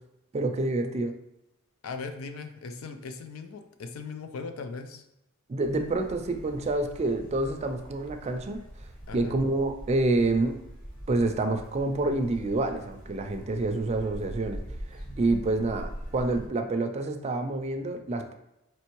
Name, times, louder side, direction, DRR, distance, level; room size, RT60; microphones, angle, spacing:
voice 1, 0.3-1.1 5.5-8.6 9.1-10.5 11.1-14.6 14.9-18.3, right 2 dB, 30° right, 5 dB, 0.4 m, -28 dB
voice 2, 1.8-5.0 9.1-9.4, left 4 dB, 75° left, 7 dB, 0.5 m, -39 dB
sound 1, 5.6-16.5, equal, 40° left, 1.4 m, -43 dB
4.4 x 3.1 x 3.0 m, 0.87 s
head